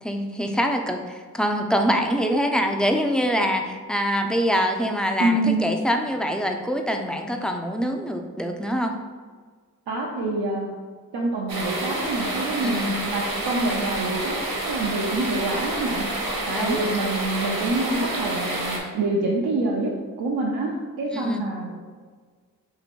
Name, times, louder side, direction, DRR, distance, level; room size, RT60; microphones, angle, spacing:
voice 1, 0.0-9.0 12.6-13.0 16.5-16.8 21.1-21.4, equal, ahead, 4 dB, 0.3 m, -24 dB
voice 2, 5.2-5.6 9.9-10.7 11.1-16.1 16.5-19.9 20.2-21.9, right 2 dB, 90° right, -4 dB, 0.6 m, -26 dB
sound 1, 11.5-18.8, right 1 dB, 65° right, 1.0 m, -28 dB
3.0 x 2.8 x 4.3 m, 1.5 s
cardioid pair, 70°, 36 cm